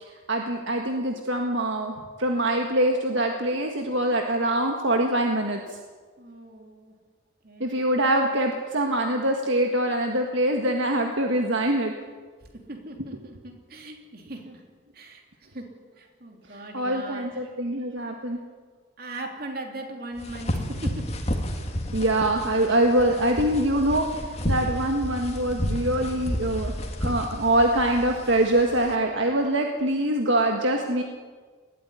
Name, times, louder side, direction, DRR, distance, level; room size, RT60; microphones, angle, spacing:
voice 1, 0.0-5.8 7.6-11.9 16.5-18.4 21.9-26.7 27.0-31.0, right 1 dB, 65° right, 3 dB, 1.7 m, -24 dB
voice 2, 6.2-6.9 7.4-7.8 12.5-14.6 14.9-17.4 19.0-21.2 22.7-22.8, right 2 dB, 50° right, 3 dB, 3.1 m, -39 dB
sound 1, 20.2-29.0, equal, 30° left, 2.2 m, -31 dB
20.5 x 13.5 x 9.7 m, 1.5 s
head